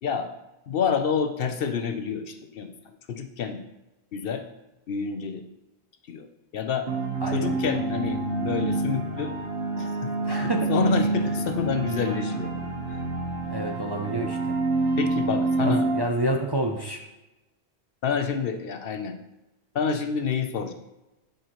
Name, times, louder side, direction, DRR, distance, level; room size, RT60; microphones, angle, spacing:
voice 1, 0.7-2.7 3.1-3.6 4.1-4.4 4.9-5.4 6.1-6.3 6.5-6.9 7.3-9.3 9.8-12.5 15.0-15.9 18.0-19.2 19.7-20.7, left 6 dB, 65° left, 7 dB, 0.8 m, -28 dB
sound 1, 6.9-16.0, right 3 dB, 60° right, 1.4 m, -27 dB
voice 2, 7.2-7.6 10.2-10.7 13.5-14.6 15.6-17.0, right 1 dB, 25° right, 1 dB, 0.6 m, -28 dB
10.0 x 6.3 x 3.0 m, 1.0 s
omnidirectional pair, 1.1 m